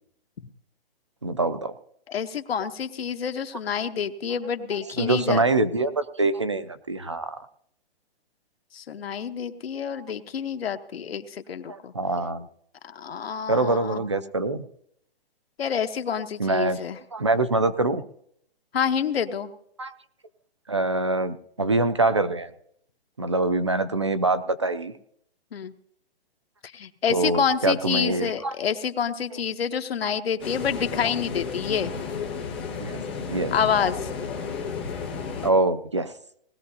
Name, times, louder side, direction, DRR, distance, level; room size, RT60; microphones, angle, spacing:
voice 1, 1.2-1.7 5.0-7.4 11.7-12.5 13.5-14.7 16.4-16.8 17.1-18.0 19.8-19.9 20.7-22.5 23.2-24.9 27.1-28.5 32.8-33.0 33.3-33.5 35.4-36.1, right 2 dB, 30° right, 13 dB, 0.4 m, -24 dB
voice 2, 2.1-5.4 8.7-11.9 12.8-14.0 15.6-17.0 18.7-19.5 25.5-25.7 26.7-31.9 33.5-34.1, left 7 dB, 80° left, 9 dB, 1.1 m, -28 dB
sound 1, 30.4-35.5, left 5 dB, 10° left, 0.6 m, -32 dB
19.5 x 14.0 x 2.7 m, 0.71 s
hypercardioid pair, 180°, 30 cm